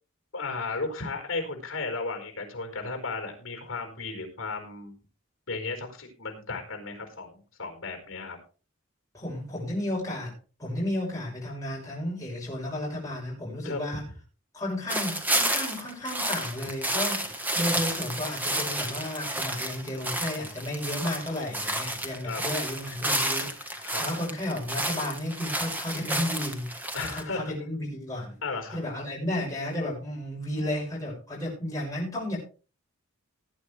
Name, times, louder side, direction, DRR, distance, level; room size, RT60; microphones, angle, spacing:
voice 1, 0.3-4.9 5.5-8.4 13.6-13.9 22.2-22.4 23.8-24.0 26.9-27.5 28.4-28.8, left 3 dB, 65° left, 4 dB, 4.5 m, -34 dB
voice 2, 9.1-10.3 10.6-14.0 14.5-26.7 27.0-28.4 28.7-32.4, left 1 dB, 15° left, -5 dB, 6.0 m, -33 dB
sound 1, 14.9-27.2, right 1 dB, 10° right, 1.3 m, -31 dB
18.5 x 9.6 x 3.4 m, 0.35 s
head